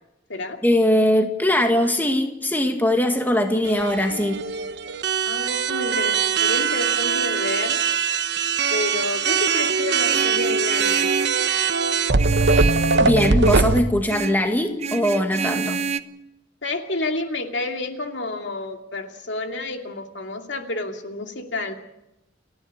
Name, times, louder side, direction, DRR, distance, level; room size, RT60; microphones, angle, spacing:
voice 1, 0.6-4.4 13.0-15.9, left 1 dB, 10° left, 4 dB, 1.9 m, -21 dB
sound 1, 3.6-13.8, right 5 dB, 65° right, 1.0 m, -21 dB
voice 2, 5.2-7.8 8.7-11.0 16.6-21.7, left 2 dB, 70° left, 4 dB, 2.6 m, -29 dB
Vehicle horn car horn honking, 10.1-11.4 12.2-13.7 14.1-14.4 14.8-16.0, right 5 dB, 35° right, 0.9 m, -28 dB
30.0 x 10.5 x 8.8 m, 0.88 s
head